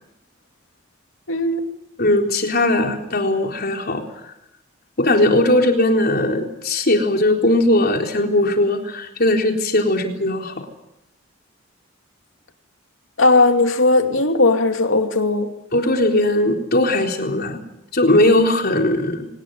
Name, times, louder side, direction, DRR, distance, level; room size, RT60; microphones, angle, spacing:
voice 1, 1.3-1.6 13.2-15.5, left 2 dB, 85° left, 2.5 m, -17 dB
voice 2, 2.0-4.0 5.0-10.5 15.7-17.6 17.9-19.3, left 1 dB, 55° left, 4.0 m, -18 dB
23.5 x 19.5 x 9.4 m
head